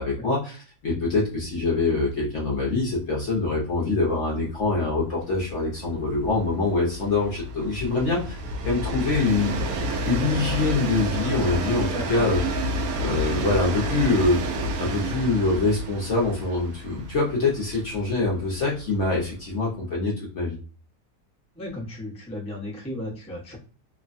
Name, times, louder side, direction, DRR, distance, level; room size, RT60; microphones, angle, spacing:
voice 1, 0.0-9.5 10.0-12.7 13.0-14.4 14.8-20.6, left 3 dB, 55° left, -3 dB, 0.9 m, -24 dB
Train, 1.4-1.5 1.8-1.9 2.2-19.6, right 1 dB, 70° right, 0.9 m, -30 dB
voice 2, 21.6-23.6, left 1 dB, 5° left, -5 dB, 0.6 m, -35 dB
3.1 x 2.2 x 2.5 m, 0.40 s
omnidirectional pair, 1.8 m